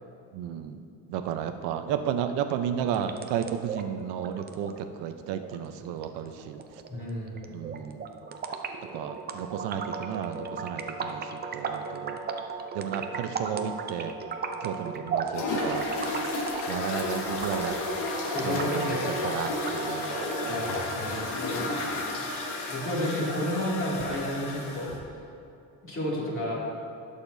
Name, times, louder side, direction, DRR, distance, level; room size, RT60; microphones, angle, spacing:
voice 1, 0.3-6.6 7.5-8.1 8.9-12.2 12.7-14.1 14.6-16.2 16.7-17.8 18.4-19.0 19.2-20.7, right 9 dB, 80° right, 8 dB, 0.8 m, -33 dB
sound 1, 2.8-20.8, right 5 dB, 25° right, 0.5 m, -36 dB
voice 2, 6.9-7.3 18.2-19.0 20.5-22.0 22.7-24.9 25.8-26.6, left 1 dB, 30° left, -6 dB, 2.6 m, -31 dB
sound 2, 15.3-25.0, left 2 dB, 80° left, 1.7 m, -32 dB
19.0 x 6.7 x 2.7 m, 2.6 s
cardioid pair, 145°, 40 cm